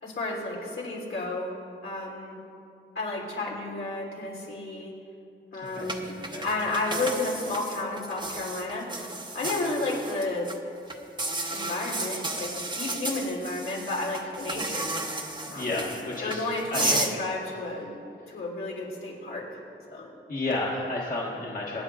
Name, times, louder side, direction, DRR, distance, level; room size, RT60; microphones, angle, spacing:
voice 1, 0.0-1.5 1.8-2.4 2.9-4.9 5.5-6.2 6.4-8.9 9.3-10.5 11.5-14.9 15.5-15.9 16.2-17.9 18.3-19.6 19.9-20.1, left 2 dB, 80° left, -4 dB, 3.3 m, -32 dB
voice 2, 5.7-6.4 15.5-16.4 16.7-17.0 19.9-21.8, left 2 dB, 40° left, -4 dB, 1.5 m, -32 dB
sound 1, 5.9-10.6 10.9-17.1, right 2 dB, 20° right, 0.9 m, -33 dB
25.0 x 9.7 x 2.5 m, 2.6 s
wide cardioid pair, 100°, 21 cm